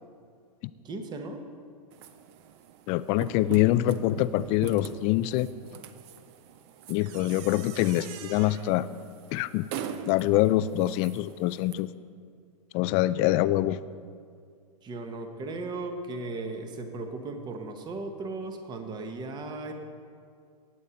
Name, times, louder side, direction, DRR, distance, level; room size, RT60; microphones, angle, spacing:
voice 1, 0.8-1.4 14.8-19.7, right 3 dB, 20° right, 6 dB, 1.2 m, -36 dB
sound 1, 1.9-11.7, right 8 dB, 40° right, 0.7 m, -42 dB
voice 2, 2.9-5.5 6.9-8.9 9.3-9.7 10.1-11.9 12.7-13.8, left 15 dB, 30° left, 15 dB, 0.3 m, -25 dB
18.0 x 8.2 x 4.1 m, 2.2 s
hypercardioid pair, 120°, 20 cm